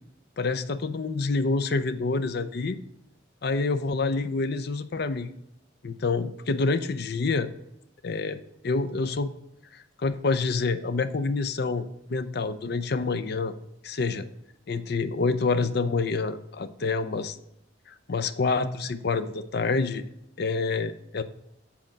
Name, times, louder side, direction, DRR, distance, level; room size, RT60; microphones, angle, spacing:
voice 1, 0.4-2.8 3.4-5.3 5.8-7.5 8.0-9.3 9.7-13.5 13.8-14.3 14.7-17.4 17.9-20.0 20.4-21.2, left 3 dB, 55° left, 11 dB, 0.5 m, -27 dB
7.7 x 4.3 x 6.0 m, 0.79 s
head